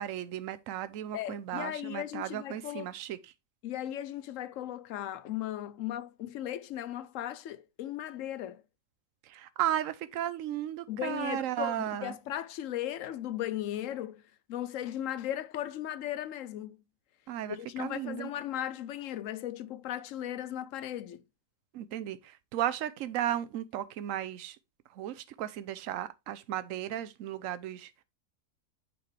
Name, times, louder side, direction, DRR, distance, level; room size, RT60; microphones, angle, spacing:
voice 1, 0.0-3.2 9.3-12.2 17.3-18.3 21.7-24.6 25.0-27.9, right 12 dB, 70° right, 1.0 m, -35 dB
voice 2, 1.1-2.9 3.6-8.6 10.9-14.2 14.5-16.8 17.5-21.2, left 12 dB, 70° left, 0.9 m, -37 dB
8.5 x 4.4 x 3.2 m
omnidirectional pair, 1.5 m